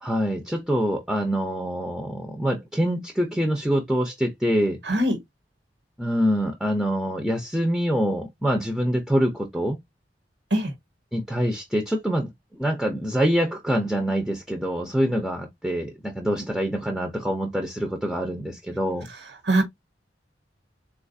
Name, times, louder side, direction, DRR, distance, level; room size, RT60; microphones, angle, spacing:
voice 1, 0.0-4.8 6.0-9.8 11.1-19.1, equal, ahead, 0.5 m, -25 dB
voice 2, 4.9-5.2 10.5-10.7 19.5-19.6, right 1 dB, 80° right, 1.2 m, -21 dB
3.8 x 2.4 x 2.6 m
head